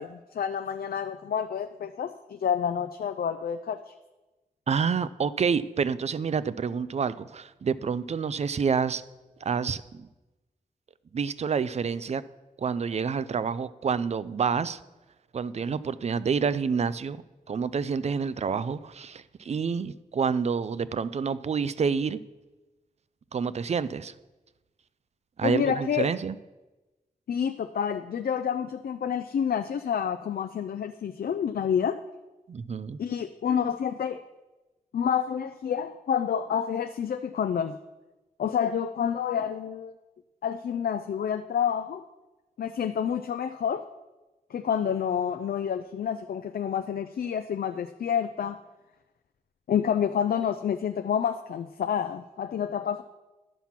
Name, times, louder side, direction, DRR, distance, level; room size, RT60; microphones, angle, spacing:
voice 1, 0.0-3.9 25.4-26.1 27.3-32.0 33.0-34.2 34.9-37.8 38.4-39.9 40.4-42.0 42.6-43.8 44.5-48.6 49.7-53.0, left 8 dB, 85° left, 10 dB, 0.4 m, -28 dB
voice 2, 4.7-9.0 9.4-9.8 11.1-12.2 12.6-14.8 15.3-17.2 17.5-22.2 23.3-24.1 25.4-26.4 32.5-33.0, right 6 dB, 50° right, 16 dB, 0.4 m, -28 dB
11.0 x 5.9 x 5.8 m, 1.1 s
wide cardioid pair, 140°, 15 cm